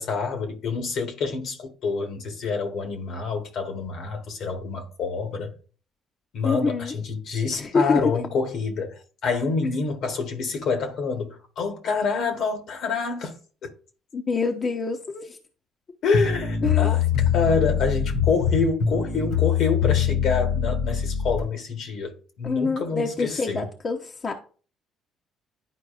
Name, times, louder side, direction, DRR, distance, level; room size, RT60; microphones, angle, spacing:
voice 1, 0.0-5.5 6.3-13.7 16.0-17.0 17.3-23.6, left 4 dB, 65° left, 1.3 m, -27 dB
voice 2, 6.4-6.9 7.5-8.0 14.1-15.4 16.6-16.9 22.4-24.3, left 4 dB, 45° left, 0.9 m, -26 dB
sound 1, 16.1-21.5, left 8 dB, 85° left, 2.2 m, -23 dB
10.5 x 4.6 x 2.5 m
supercardioid pair, 65°, 0 cm